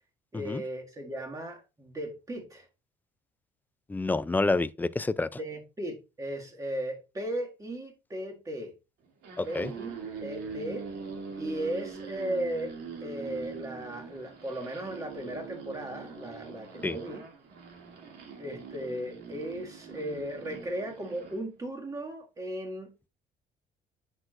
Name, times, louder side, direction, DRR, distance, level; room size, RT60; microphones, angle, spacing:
voice 1, 0.3-2.7 5.4-8.7 9.4-10.9 11.4-12.7 13.0-17.2 18.4-22.9, right 1 dB, 20° right, 2.0 m, -36 dB
voice 2, 3.9-5.3 9.4-9.7 16.8-17.0, left 3 dB, 10° left, 0.3 m, -28 dB
sound 1, 9.1-21.4, right 5 dB, 70° right, 2.4 m, -43 dB
9.8 x 6.2 x 2.5 m
cardioid pair, 110°, 17 cm